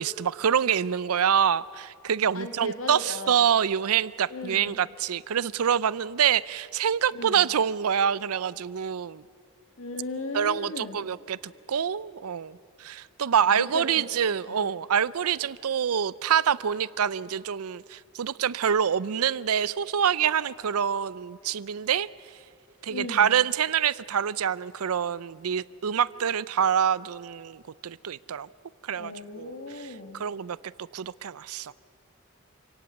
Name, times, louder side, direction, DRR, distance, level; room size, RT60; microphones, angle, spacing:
voice 1, 0.0-9.2 10.3-22.1 22.8-28.5 28.8-31.7, right 8 dB, 90° right, 20 dB, 0.5 m, -26 dB
voice 2, 2.3-3.5 4.3-4.8 7.1-7.5 9.8-11.0 13.4-14.1 14.5-14.6 22.9-23.3 28.9-30.2, left 2 dB, 65° left, 7 dB, 2.1 m, -37 dB
27.0 x 17.5 x 8.2 m, 2.3 s
head